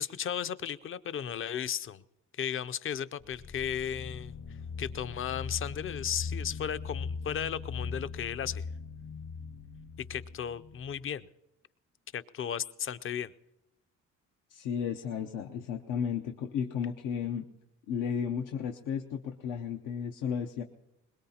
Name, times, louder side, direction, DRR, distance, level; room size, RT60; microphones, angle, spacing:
voice 1, 0.0-2.0 2.4-4.3 4.8-8.7 10.1-11.3 12.1-13.3, left 8 dB, 45° left, 0.5 m, -35 dB
sound 1, 3.2-11.0, left 5 dB, 70° left, 2.2 m, -40 dB
voice 2, 14.5-17.5 17.9-20.6, left 7 dB, 85° left, 0.8 m, -33 dB
22.0 x 21.0 x 2.8 m
cardioid pair, 90°, 30 cm